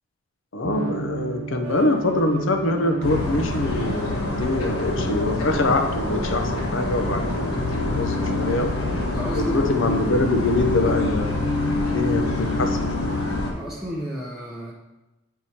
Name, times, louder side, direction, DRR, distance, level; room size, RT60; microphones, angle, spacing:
voice 1, 0.5-8.8 9.3-11.5 11.8-13.1, left 2 dB, 60° left, 5 dB, 0.7 m, -24 dB
sound 1, 0.6-8.0, right 6 dB, 70° right, 0.4 m, -36 dB
sound 2, 3.0-13.5, left 2 dB, 80° left, 1.4 m, -25 dB
voice 2, 9.1-9.7 13.4-14.7, equal, ahead, -6 dB, 0.6 m, -33 dB
9.5 x 4.6 x 2.8 m, 1.0 s
head